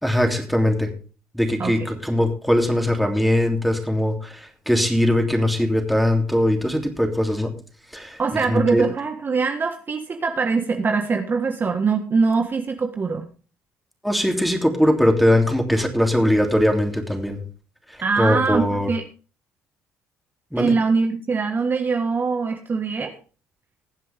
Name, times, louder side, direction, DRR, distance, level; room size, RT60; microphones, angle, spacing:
voice 1, 0.0-0.9 1.3-7.5 7.9-8.2 8.5-8.8 14.0-17.4 17.9-18.9 20.5-20.7, left 1 dB, ahead, 3 dB, 3.1 m, -21 dB
voice 2, 8.2-13.2 18.0-19.0 20.6-23.1, right 4 dB, 40° right, 5 dB, 1.6 m, -23 dB
20.5 x 7.6 x 3.5 m, 0.37 s
supercardioid pair, 75°, 5 cm